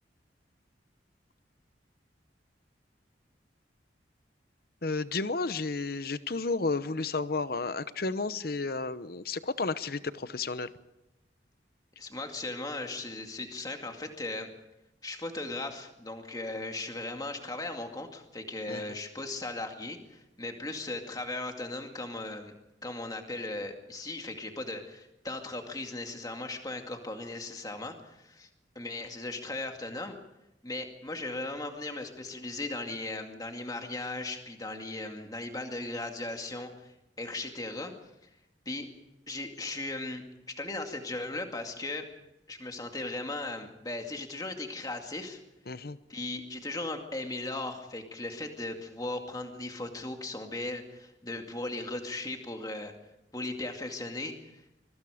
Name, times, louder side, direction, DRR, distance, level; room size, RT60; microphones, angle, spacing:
voice 1, 4.8-10.7 18.7-18.8 45.7-46.0, left 3 dB, 55° left, 14 dB, 0.9 m, -32 dB
voice 2, 12.0-14.5 15.0-22.5 22.8-28.5 28.8-30.2 30.6-37.9 38.7-38.9 39.3-42.1 42.5-45.4 46.1-52.9 53.3-54.6, left 2 dB, 20° left, 4 dB, 2.2 m, -37 dB
24.5 x 23.0 x 5.0 m, 0.92 s
head